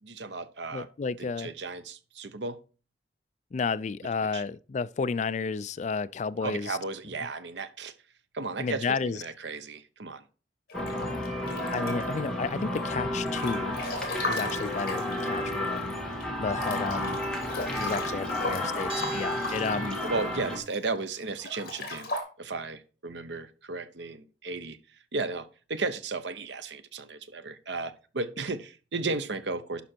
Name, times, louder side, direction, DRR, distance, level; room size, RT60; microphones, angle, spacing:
voice 1, 0.0-0.9 1.2-2.6 4.3-4.4 6.4-7.9 8.3-10.2 20.0-22.1 22.4-24.8 25.1-29.8, right 3 dB, 75° right, 0.9 m, -34 dB
voice 2, 0.7-1.5 3.5-6.8 8.6-9.2 11.7-13.7 14.3-16.0 16.4-17.2 17.8-20.0, left 4 dB, 40° left, 0.3 m, -32 dB
Breathing / Bathtub (filling or washing) / Splash splatter, 10.7-12.3 12.8-15.9 16.2-16.3 16.6-20.8 21.3-22.2, left 2 dB, 55° left, 2.4 m, -37 dB
sound 1, 10.7-20.6, left 1 dB, 5° left, 1.8 m, -32 dB
Bell, 18.9-20.5, right 5 dB, 30° right, 2.9 m, -43 dB
11.5 x 5.2 x 4.4 m
head